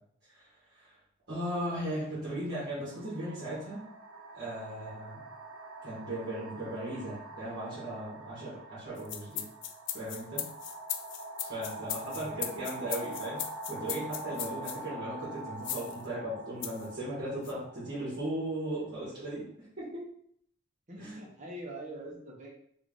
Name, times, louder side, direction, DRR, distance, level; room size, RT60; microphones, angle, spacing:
voice 1, 1.3-3.8 4.3-5.2 5.8-9.4 9.9-10.4 11.4-13.4 13.7-19.5 19.8-20.1 21.0-21.2, right 1 dB, 60° right, -10 dB, 1.6 m, -37 dB
sound 1, 1.3-1.5 2.5-19.1, right 2 dB, 85° right, 0.7 m, -45 dB
sound 2, 9.0-14.8 15.6-16.0 16.6-16.9 17.4-17.5, left 11 dB, 65° left, 0.3 m, -37 dB
voice 2, 12.1-12.5 20.9-22.5, right 1 dB, 40° right, -2 dB, 0.9 m, -44 dB
3.6 x 2.4 x 3.7 m, 0.66 s
head